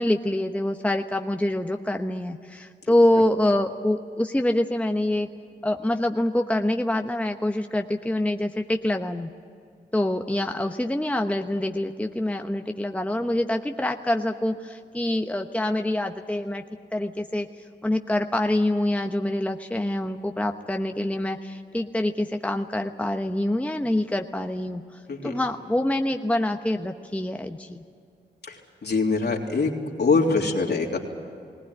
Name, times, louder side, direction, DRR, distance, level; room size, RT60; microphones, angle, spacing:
voice 1, 0.0-5.3 5.6-9.3 9.9-16.6 16.9-17.5 17.8-24.8 25.2-27.8, left 1 dB, 5° left, 5 dB, 1.1 m, -25 dB
voice 2, 28.8-29.7 30.0-31.0, left 4 dB, 60° left, 0 dB, 3.2 m, -23 dB
19.5 x 18.5 x 9.8 m, 2.3 s
cardioid pair, 50°, 19 cm